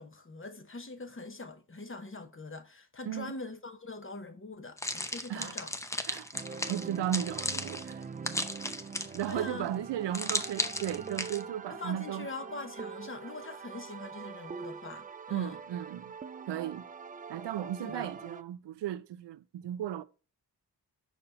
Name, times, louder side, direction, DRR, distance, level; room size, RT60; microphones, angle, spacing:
voice 1, 0.0-5.7 9.3-9.7 11.7-15.6 17.8-18.1, left 3 dB, 30° left, 0.9 m, -43 dB
sound 1, 4.8-9.4 10.1-11.4, left 1 dB, 5° left, 0.6 m, -35 dB
sound 2, 6.3-18.4, right 5 dB, 25° right, 0.3 m, -44 dB
voice 2, 6.7-8.0 9.1-12.3 15.3-16.1 16.5-16.9 17.3-20.0, right 11 dB, 85° right, 0.5 m, -35 dB
5.3 x 4.2 x 4.3 m
cardioid pair, 55°, 41 cm